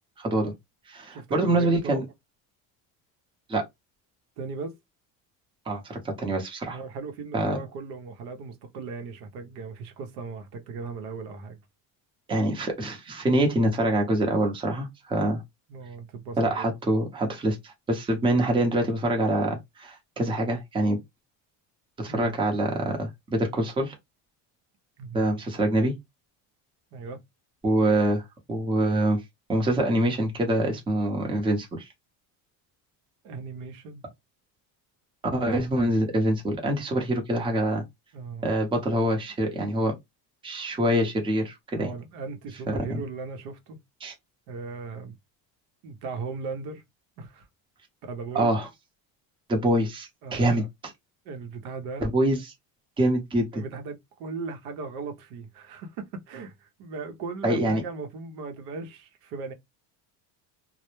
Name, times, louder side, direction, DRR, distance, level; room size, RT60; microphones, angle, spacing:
voice 1, 0.2-0.5 0.9-2.0 3.5-3.6 5.7-6.8 7.3-7.6 12.3-15.4 16.4-21.0 22.0-24.0 25.1-25.9 27.6-29.2 29.5-31.9 35.3-37.8 38.4-39.9 40.4-41.9 42.7-43.0 44.0-44.1 48.3-48.7 49.5-50.9 52.0-52.5 53.0-53.6 57.4-57.8, right 1 dB, 15° right, 0.6 m, -25 dB
voice 2, 1.1-2.0 4.4-4.8 6.7-11.6 15.7-16.7 22.1-22.3 25.0-25.3 26.9-27.2 33.2-34.0 35.3-35.6 38.1-38.5 41.7-43.8 44.5-45.2 45.8-46.8 47.2-47.5 48.0-48.5 50.2-50.7 51.3-52.1 53.5-59.5, right 4 dB, 70° right, 0.7 m, -37 dB
2.1 x 2.0 x 3.0 m
cardioid pair, 135°, 39 cm